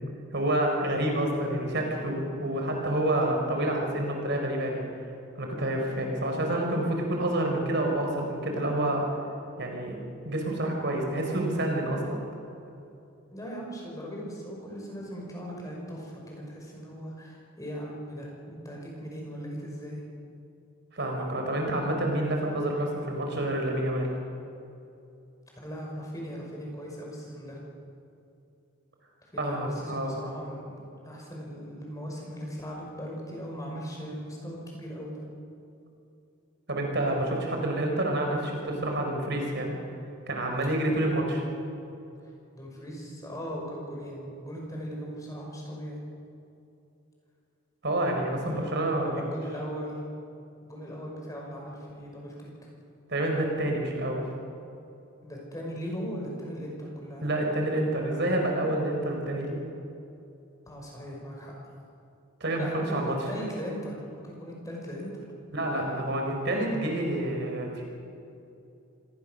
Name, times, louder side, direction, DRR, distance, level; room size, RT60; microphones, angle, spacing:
voice 1, 0.3-4.8 5.4-9.0 9.6-10.0 10.2-12.2 20.9-24.1 29.4-30.1 36.7-39.8 40.3-41.4 47.8-49.1 53.1-54.2 57.2-59.6 62.4-63.1 65.5-67.8, right 1 dB, 55° right, 2 dB, 4.3 m, -28 dB
voice 2, 13.3-20.0 25.6-27.6 29.2-35.2 42.2-46.0 48.4-48.7 49.0-50.0 50.6-52.7 55.2-57.3 60.7-61.5 62.6-65.1, equal, 15° left, -2 dB, 5.6 m, -38 dB
26.0 x 18.5 x 6.5 m, 2.7 s
head